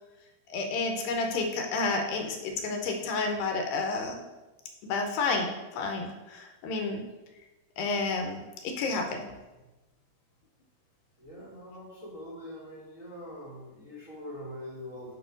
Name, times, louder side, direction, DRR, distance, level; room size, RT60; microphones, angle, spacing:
voice 1, 0.5-4.2 4.8-7.1 7.8-9.2, left 3 dB, 75° left, 3 dB, 2.4 m, -30 dB
voice 2, 11.2-15.1, left 1 dB, 55° right, -9 dB, 0.8 m, -43 dB
8.2 x 3.2 x 5.0 m, 1.1 s
omnidirectional pair, 4.4 m